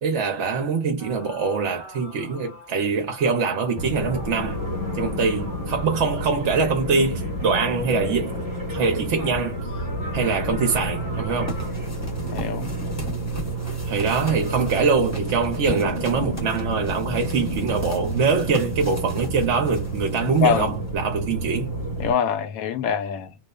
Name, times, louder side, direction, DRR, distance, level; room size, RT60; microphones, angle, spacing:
voice 1, 0.0-4.6 5.0-8.4 8.7-9.7 10.1-11.6 13.9-21.7, right 5 dB, 60° right, 0.9 m, -23 dB
sound 1, 1.0-6.5 8.2-8.3 9.0-11.7, left 2 dB, 45° left, 0.8 m, -44 dB
sound 2, 3.7-22.1, right 1 dB, 15° right, 0.7 m, -30 dB
sound 3, 11.5-21.0, left 1 dB, 15° left, 0.7 m, -39 dB
voice 2, 12.3-12.7 20.4-20.8 22.0-23.3, left 7 dB, 75° left, 1.1 m, -24 dB
2.9 x 2.1 x 2.2 m
omnidirectional pair, 1.6 m